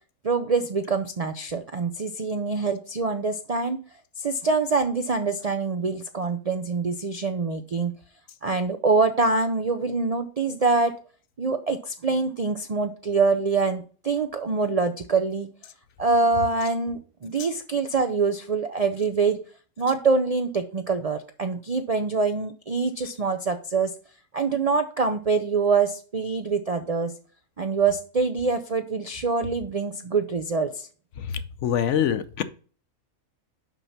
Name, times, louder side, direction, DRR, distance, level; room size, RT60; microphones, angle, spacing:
voice 1, 0.2-3.8 4.2-8.0 8.4-10.9 11.4-15.5 16.0-19.4 19.8-23.9 24.3-27.1 27.6-30.9, right 4 dB, 70° right, 8 dB, 0.3 m, -25 dB
voice 2, 31.6-32.4, left 9 dB, 65° left, 13 dB, 0.9 m, -23 dB
6.1 x 5.4 x 5.8 m, 0.40 s
omnidirectional pair, 1.5 m